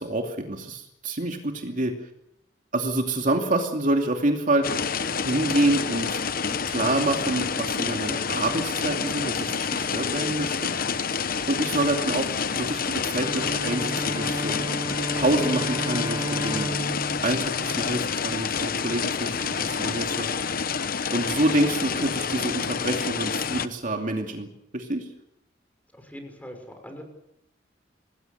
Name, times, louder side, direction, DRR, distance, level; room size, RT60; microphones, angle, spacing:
voice 1, 0.0-1.9 2.7-4.7 5.2-6.2 6.5-10.7 11.5-14.6 15.1-16.7 17.2-20.3 21.1-25.1, right 1 dB, 45° right, 3 dB, 2.7 m, -27 dB
sound 1, 4.6-23.7, left 6 dB, 50° left, 1.0 m, -28 dB
Bowed string instrument, 13.1-18.5, right 1 dB, 20° right, 0.8 m, -33 dB
voice 2, 25.9-27.0, equal, 10° left, 5 dB, 6.0 m, -42 dB
26.5 x 20.0 x 6.8 m, 0.82 s
head